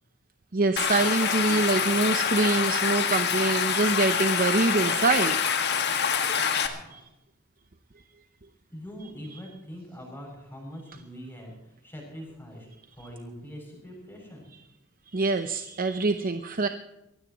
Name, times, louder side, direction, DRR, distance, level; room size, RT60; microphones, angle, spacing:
voice 1, 0.5-5.4 6.9-7.0 15.1-16.7, right 3 dB, 40° right, 8 dB, 0.8 m, -25 dB
Stream, 0.8-6.7, left 7 dB, 50° left, 1.7 m, -26 dB
voice 2, 6.6-7.0 8.7-12.7 13.0-14.5, equal, 10° left, 0 dB, 7.3 m, -43 dB
23.5 x 16.5 x 3.1 m, 0.90 s
head